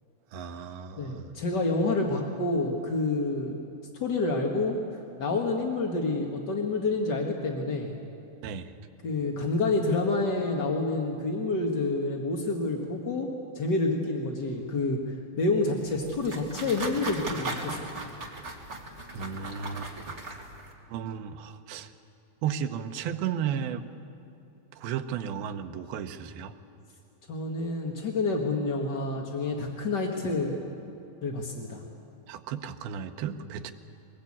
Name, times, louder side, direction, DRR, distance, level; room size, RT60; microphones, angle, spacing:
voice 1, 0.3-1.3 8.4-8.8 19.1-20.2 20.9-21.9 22.4-23.9 24.7-26.6 32.3-33.7, right 8 dB, 85° right, 6 dB, 2.8 m, -34 dB
voice 2, 1.0-3.6 4.0-4.8 5.2-8.0 9.0-13.3 13.5-15.0 15.4-17.8 27.3-30.6 31.2-31.8, left 3 dB, 55° left, 0 dB, 1.2 m, -28 dB
sound 1, 15.8-20.7, right 2 dB, 25° right, 1.7 m, -38 dB
22.5 x 19.5 x 8.6 m, 2.7 s
omnidirectional pair, 4.2 m